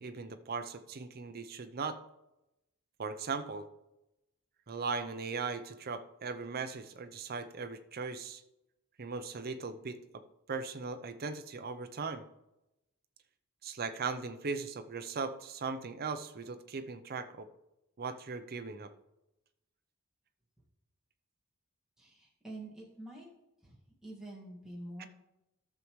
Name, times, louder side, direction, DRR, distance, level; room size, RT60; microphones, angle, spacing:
voice 1, 0.0-2.0 3.0-3.7 4.7-8.4 9.0-10.2 10.5-12.2 13.6-17.5 18.0-18.9 25.0-25.1, right 4 dB, 45° right, 9 dB, 0.6 m, -38 dB
voice 2, 22.0-23.3 23.6-23.8 24.0-25.1, right 1 dB, ahead, -5 dB, 1.8 m, -46 dB
14.0 x 6.6 x 3.1 m, 0.92 s
head